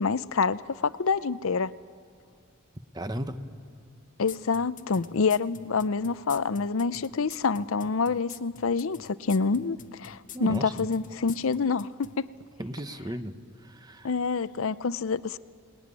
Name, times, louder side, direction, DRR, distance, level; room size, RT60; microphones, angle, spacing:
voice 1, 0.0-1.7 4.2-12.3 14.0-15.4, left 4 dB, 70° left, 16 dB, 0.6 m, -27 dB
voice 2, 2.9-3.4 10.3-10.9 12.6-13.3 13.6-14.1, right 1 dB, 20° right, 9 dB, 1.1 m, -35 dB
sound 1, 4.3-12.1, left 7 dB, 40° left, 0.8 m, -45 dB
28.5 x 20.0 x 9.7 m, 2.3 s
head